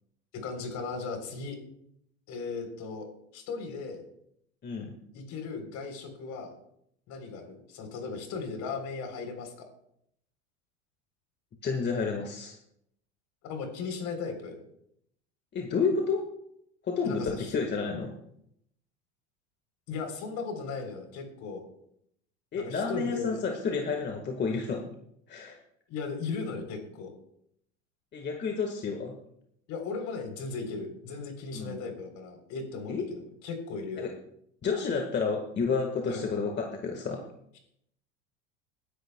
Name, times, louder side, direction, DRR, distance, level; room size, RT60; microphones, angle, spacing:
voice 1, 0.3-1.6 2.3-3.0 3.3-4.0 5.1-6.5 7.1-9.7 13.4-14.6 17.0-17.5 19.9-21.6 22.5-23.4 25.9-27.1 29.7-34.1 36.1-36.3, left 4 dB, 50° left, 5 dB, 3.6 m, -37 dB
voice 2, 4.6-4.9 11.6-12.5 15.5-16.2 16.8-18.1 22.5-24.8 25.3-25.6 28.1-29.1 31.5-31.8 32.9-33.0 34.0-34.1 34.6-37.2, left 5 dB, 30° left, 3 dB, 1.6 m, -30 dB
21.5 x 10.5 x 2.3 m, 0.74 s
hypercardioid pair, 95°, 35 cm